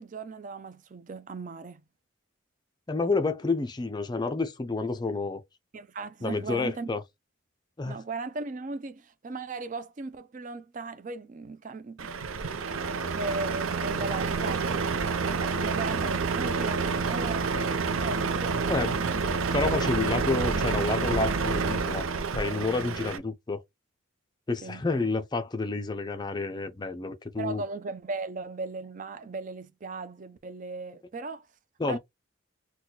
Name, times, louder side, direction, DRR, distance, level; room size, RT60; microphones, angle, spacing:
voice 1, 0.0-1.8 5.7-6.9 7.8-12.1 13.2-14.9 15.4-17.6 18.0-19.2 24.6-24.8 27.4-31.5 31.9-32.0, right 3 dB, 40° right, 0.4 m, -37 dB
voice 2, 2.9-5.4 6.2-7.0 7.8-8.0 18.7-18.9 19.5-22.1 22.3-23.6 24.5-27.6 31.8-32.0, left 3 dB, 20° left, 0.4 m, -29 dB
Truck, 12.0-23.2, right 4 dB, 90° right, 0.6 m, -28 dB
4.0 x 2.2 x 2.8 m
head